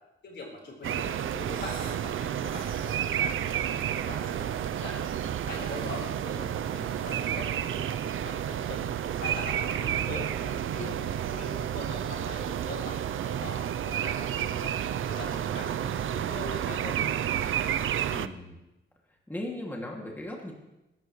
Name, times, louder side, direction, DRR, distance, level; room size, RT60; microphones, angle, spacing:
voice 1, 0.2-5.1 5.5-8.9 9.2-17.0, left 2 dB, 60° left, -2 dB, 4.4 m, -42 dB
sound 1, 0.8-18.3, right 10 dB, 75° right, 0.6 m, -31 dB
sound 2, 1.4-2.1 2.4-3.1 3.9-5.1 5.5-6.1 6.6-8.1, right 3 dB, 45° right, 2.9 m, -50 dB
voice 2, 18.1-18.6 19.3-20.5, left 1 dB, 10° left, -1 dB, 2.4 m, -37 dB
22.5 x 12.0 x 3.2 m, 0.95 s
wide cardioid pair, 160°, 21 cm